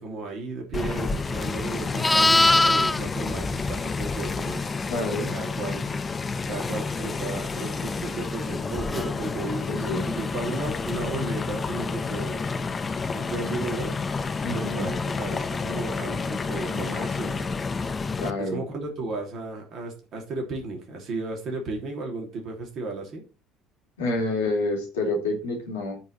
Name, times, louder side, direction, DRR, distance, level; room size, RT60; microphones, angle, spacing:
voice 1, 0.0-4.6 5.3-6.0 6.5-12.4 13.1-14.0 14.5-17.4 18.4-23.2, right 3 dB, 50° right, 1 dB, 3.2 m, -34 dB
sound 1, 0.7-18.3, left 4 dB, 30° left, 1.2 m, -30 dB
Livestock farm animals working animals, 1.3-4.6 8.9-9.2, left 2 dB, 15° left, 0.5 m, -23 dB
voice 2, 4.9-5.3 9.7-10.1 14.4-14.9 18.2-18.6 24.0-26.0, left 2 dB, 80° left, 1 dB, 3.4 m, -28 dB
12.5 x 4.7 x 4.3 m, 0.30 s
figure-of-eight pair, 55°, 0 cm